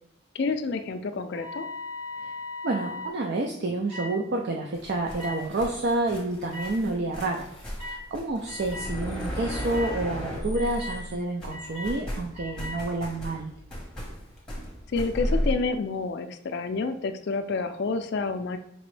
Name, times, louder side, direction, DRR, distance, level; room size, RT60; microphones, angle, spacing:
voice 1, 0.3-1.7 14.9-18.6, left 4 dB, 55° left, 8 dB, 0.4 m, -29 dB
sound 1, 1.3-3.1 3.9-4.1 5.2-5.4 6.5-6.7 7.8-8.0 8.5-8.9 9.5-9.9 10.5-11.0 11.5-11.9 12.3-12.8, left 2 dB, 35° right, 1.5 m, -38 dB
voice 2, 2.6-7.5 7.8-13.5, right 2 dB, 55° right, 1 dB, 0.4 m, -29 dB
sound 2, 4.7-11.1 11.4-15.5, equal, 5° left, 1.1 m, -34 dB
5.2 x 2.9 x 3.2 m, 0.71 s
head